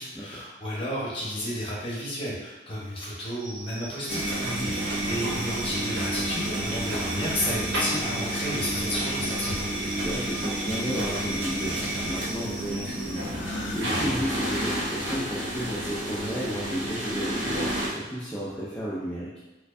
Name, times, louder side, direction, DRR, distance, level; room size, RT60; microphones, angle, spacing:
voice 1, 0.0-4.2 4.6-9.7, equal, 30° left, -6 dB, 1.1 m, -32 dB
sound 1, 3.4-13.2, right 2 dB, 40° right, 0.6 m, -42 dB
sound 2, 4.1-17.9, right 1 dB, 85° right, 0.8 m, -30 dB
voice 2, 4.4-4.8 10.0-19.3, equal, 5° left, -10 dB, 0.4 m, -33 dB
Gasp, 13.3-13.9, left 3 dB, 75° left, 0.4 m, -37 dB
4.3 x 2.4 x 2.6 m, 1.1 s
head